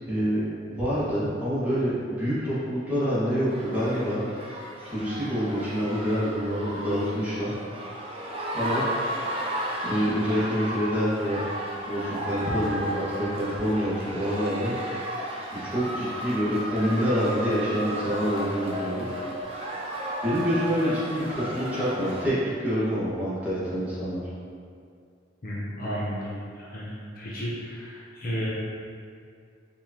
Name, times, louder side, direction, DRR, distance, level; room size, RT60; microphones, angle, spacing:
voice 1, 0.1-0.4 0.7-4.3 4.8-7.5 8.5-8.8 9.8-11.4 11.9-14.7 15.5-19.1 20.2-24.2, equal, 10° right, -12 dB, 1.4 m, -27 dB
sound 1, 3.5-22.3, right 1 dB, 30° right, 0.5 m, -34 dB
voice 2, 25.4-28.5, equal, 50° left, -7 dB, 0.8 m, -33 dB
4.9 x 3.6 x 2.8 m, 2.3 s
head